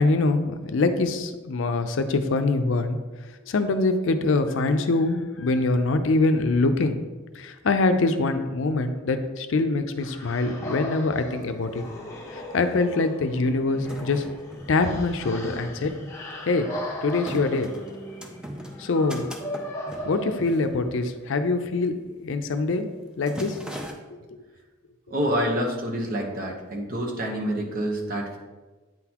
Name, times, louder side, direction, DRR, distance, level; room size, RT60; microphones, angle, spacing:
voice 1, 0.0-3.0 3.5-7.1 7.3-11.8 12.3-14.2 14.7-15.9 16.5-16.7 17.0-17.7 18.8-19.3 20.1-21.9 22.2-23.5, left 3 dB, 70° left, 8 dB, 0.5 m, -24 dB
sound 1, 10.0-21.0, equal, 15° left, 0.8 m, -38 dB
sound 2, 11.4-11.5 11.7-12.5 13.2-21.5 21.7-22.0 22.3-22.7 22.9-23.9, equal, 5° right, 0.5 m, -40 dB
voice 2, 25.1-28.4, equal, 45° right, 0 dB, 1.0 m, -27 dB
9.0 x 3.9 x 2.9 m, 1.3 s
head